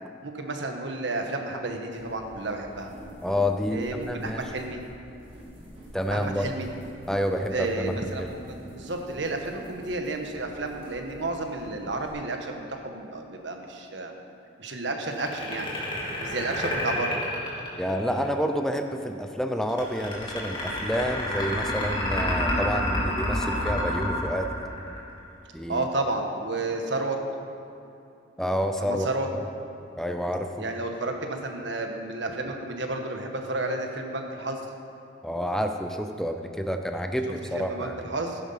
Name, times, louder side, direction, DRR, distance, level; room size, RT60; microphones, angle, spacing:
voice 1, 0.2-2.9 3.7-4.8 6.1-6.7 7.5-14.1 14.6-15.7 16.2-17.2 25.7-27.2 28.8-29.3 30.6-34.6 37.3-38.4, right 2 dB, 70° right, 4 dB, 1.4 m, -31 dB
sound 1, 1.9-12.1, equal, 30° right, 3.5 m, -46 dB
voice 2, 3.2-4.4 5.9-6.5 7.1-8.3 17.8-24.5 25.5-25.9 28.4-29.4 30.0-30.7 35.2-38.0, equal, 5° left, 5 dB, 0.6 m, -29 dB
sound 2, 15.1-18.3 19.7-25.2, left 1 dB, 25° left, 3.2 m, -29 dB
14.5 x 11.0 x 5.7 m, 2.8 s
head